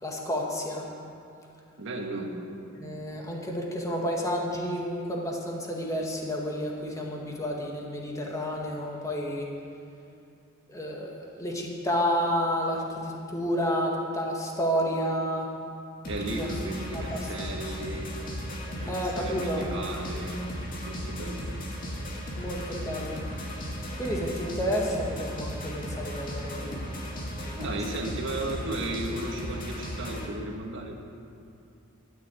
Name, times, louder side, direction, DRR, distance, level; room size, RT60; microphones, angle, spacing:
voice 1, 0.0-0.9 2.8-9.5 10.7-15.5 16.3-16.5 16.9-17.6 18.9-19.7 22.4-23.3 24.0-26.8 27.4-28.0, equal, 15° left, -1 dB, 1.8 m, -31 dB
voice 2, 1.8-2.4 16.1-18.1 18.7-20.4 20.8-21.5 27.5-31.0, right 1 dB, 60° right, 1 dB, 1.7 m, -35 dB
sound 1, 16.0-30.3, equal, 40° left, 2.1 m, -36 dB
13.5 x 7.8 x 8.4 m, 2.5 s
head